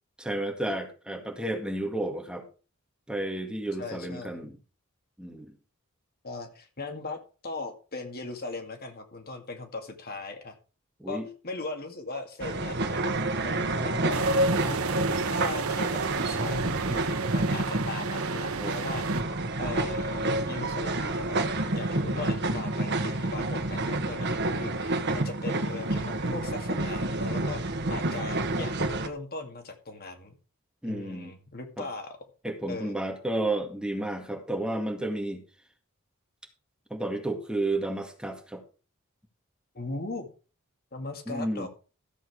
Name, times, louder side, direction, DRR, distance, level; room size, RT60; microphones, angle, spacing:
voice 1, 0.2-2.5 3.1-4.6 5.2-5.5 11.0-11.3 18.6-18.7 30.8-31.3 31.8-31.9 32.4-35.4 36.9-38.6 41.3-41.7, right 1 dB, 5° right, 3 dB, 2.0 m, -32 dB
voice 2, 3.8-4.5 6.2-10.6 11.1-19.3 19.6-21.4 21.7-30.3 30.8-32.2 32.7-33.1 39.7-40.3 40.9-41.7, left 3 dB, 45° left, 5 dB, 2.1 m, -39 dB
sound 1, 12.4-29.1, right 2 dB, 55° right, 1.5 m, -29 dB
sound 2, 14.1-19.2, right 5 dB, 85° right, 0.9 m, -33 dB
14.0 x 7.9 x 4.8 m, 0.36 s
head